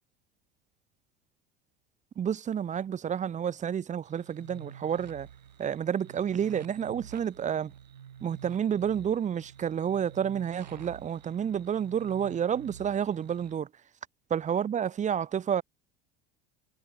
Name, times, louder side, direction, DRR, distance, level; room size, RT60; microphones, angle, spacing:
voice 1, 2.2-5.3 5.6-7.7 8.2-13.7 14.3-15.6, right 8 dB, 35° right, 3.5 m, -30 dB
sound 1, 4.1-13.6, right 9 dB, 90° right, 5.7 m, -49 dB
hypercardioid pair, 80°, 21 cm